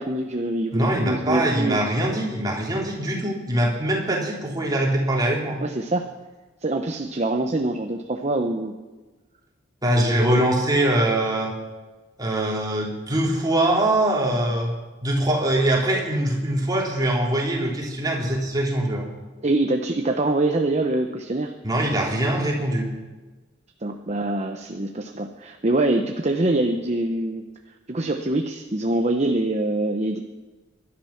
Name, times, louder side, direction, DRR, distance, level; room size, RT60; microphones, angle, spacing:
voice 1, 0.0-1.8 5.6-6.1 6.6-8.7 19.4-21.5 23.8-27.4 27.9-30.2, right 2 dB, 35° right, 4 dB, 0.9 m, -24 dB
voice 2, 0.7-5.6 9.8-11.5 12.2-14.7 15.0-19.1 21.6-22.9, right 1 dB, 20° right, -2 dB, 3.3 m, -23 dB
21.5 x 11.5 x 5.9 m, 1.2 s
head